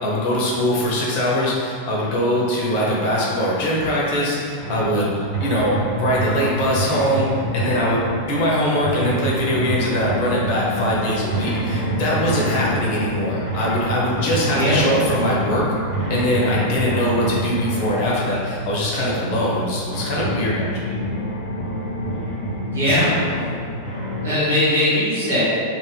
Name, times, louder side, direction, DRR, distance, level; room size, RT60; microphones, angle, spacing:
voice 1, 0.0-15.7 16.1-21.0, equal, 45° left, -5 dB, 0.8 m, -22 dB
sound 1, 4.6-24.3, right 1 dB, 40° right, 1.1 m, -27 dB
voice 2, 14.5-14.8 22.7-23.5 24.2-25.4, left 1 dB, 70° right, -10 dB, 1.4 m, -20 dB
4.0 x 2.5 x 2.2 m, 2.4 s
figure-of-eight pair, 90°, 0 cm